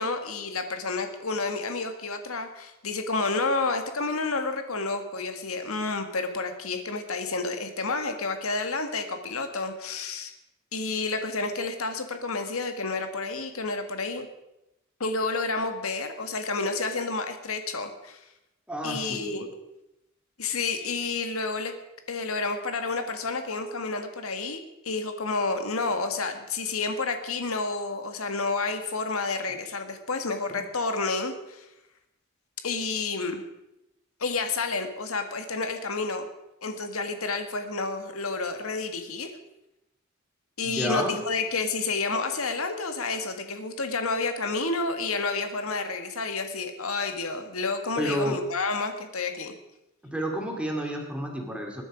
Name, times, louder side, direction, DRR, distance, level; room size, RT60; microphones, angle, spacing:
voice 1, 0.0-10.3 10.7-14.3 15.0-18.2 18.8-19.5 20.4-21.7 22.1-31.6 32.6-33.4 34.2-36.3 36.6-39.3 40.6-49.5, left 3 dB, 90° left, 7 dB, 1.7 m, -30 dB
voice 2, 18.7-19.4 40.6-41.1 48.0-48.4 50.0-51.8, equal, 5° right, 1 dB, 2.7 m, -30 dB
21.0 x 10.0 x 5.1 m, 0.90 s
head